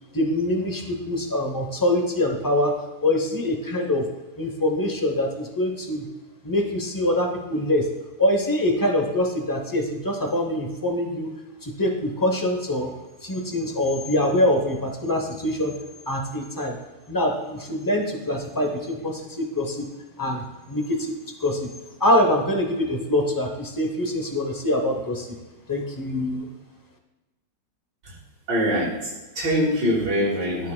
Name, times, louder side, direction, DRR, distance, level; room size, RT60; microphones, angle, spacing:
voice 1, 0.1-2.7 3.0-4.1 4.4-6.0 6.4-7.9 8.2-11.3 11.6-12.9 13.2-15.7 16.1-16.8 17.1-19.9 20.2-21.7 22.0-25.4 25.7-26.5, left 1 dB, 20° left, 3 dB, 0.5 m, -24 dB
voice 2, 28.5-30.7, equal, 85° right, -7 dB, 2.3 m, -24 dB
13.5 x 5.6 x 2.3 m, 1.1 s
omnidirectional pair, 1.9 m